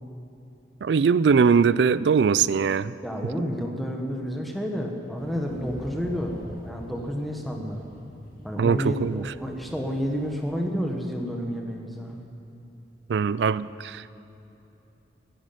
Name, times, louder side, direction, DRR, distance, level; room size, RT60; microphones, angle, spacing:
voice 1, 0.8-2.9 8.6-9.2 13.1-14.1, right 6 dB, 70° right, 18 dB, 0.4 m, -21 dB
voice 2, 3.0-7.8 8.4-12.2, equal, ahead, 1 dB, 1.3 m, -30 dB
sound 1, 5.1-10.5, equal, 50° left, 3.1 m, -43 dB
11.0 x 10.5 x 9.2 m, 3.0 s
head